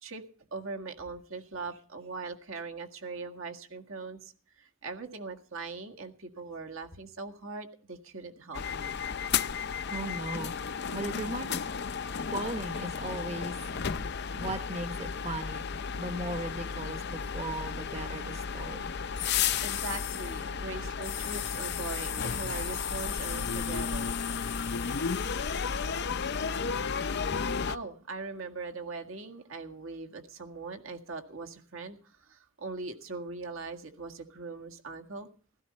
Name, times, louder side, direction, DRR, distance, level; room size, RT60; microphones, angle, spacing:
voice 1, 0.5-9.0 19.6-24.2 27.7-35.3, right 3 dB, 70° right, 4 dB, 1.9 m, -41 dB
sound 1, 8.5-27.8, left 6 dB, 50° left, 0.6 m, -33 dB
voice 2, 9.9-11.6 12.3-13.6 14.3-15.6 16.0-18.9 27.3-27.4, right 1 dB, 30° right, 7 dB, 1.1 m, -37 dB
15.5 x 13.5 x 4.3 m, 0.41 s
head